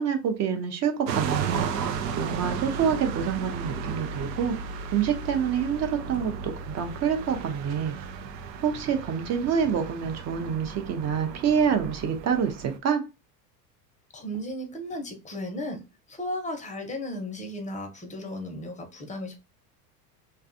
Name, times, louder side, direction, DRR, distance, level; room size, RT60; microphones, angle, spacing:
voice 1, 0.0-1.6 2.1-4.6 4.9-8.0 8.6-13.0, right 7 dB, 35° right, 0.6 m, -27 dB
sound 1, 1.1-12.8, right 6 dB, 80° right, 0.6 m, -34 dB
voice 2, 14.1-15.8 16.1-19.4, left 1 dB, 15° left, 0.6 m, -35 dB
2.6 x 2.3 x 2.5 m
hypercardioid pair, 85°, 48 cm